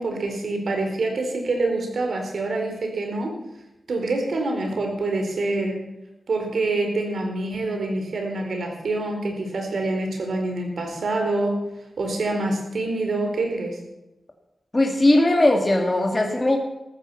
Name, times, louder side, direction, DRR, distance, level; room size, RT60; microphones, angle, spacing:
voice 1, 0.0-3.3 3.9-5.8 6.3-11.6 12.0-13.8, right 2 dB, 80° right, 3 dB, 4.4 m, -26 dB
voice 2, 14.7-16.6, left 1 dB, 25° left, 2 dB, 2.2 m, -19 dB
14.5 x 14.0 x 5.7 m, 0.95 s
wide cardioid pair, 110°, 0 cm